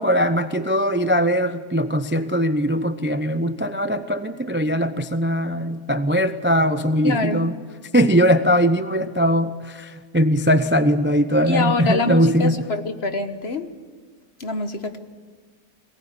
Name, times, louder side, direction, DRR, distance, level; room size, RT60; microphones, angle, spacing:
voice 1, 0.0-7.6 7.9-12.6, equal, 15° right, 10 dB, 0.4 m, -20 dB
voice 2, 7.0-7.5 11.5-13.7 14.4-15.0, left 3 dB, 40° left, 8 dB, 1.5 m, -25 dB
22.0 x 19.0 x 10.0 m, 1.5 s
omnidirectional pair, 1.7 m